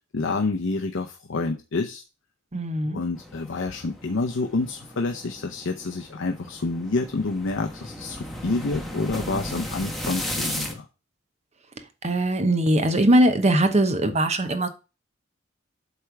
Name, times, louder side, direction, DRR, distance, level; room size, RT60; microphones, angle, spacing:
voice 1, 0.1-2.0 2.8-10.9, left 3 dB, 65° left, 0.6 m, -28 dB
voice 2, 2.5-3.0 12.0-14.7, right 1 dB, 35° right, 0.9 m, -21 dB
sound 1, 3.1-10.7, left 1 dB, ahead, 1.3 m, -35 dB
8.0 x 3.3 x 5.9 m
head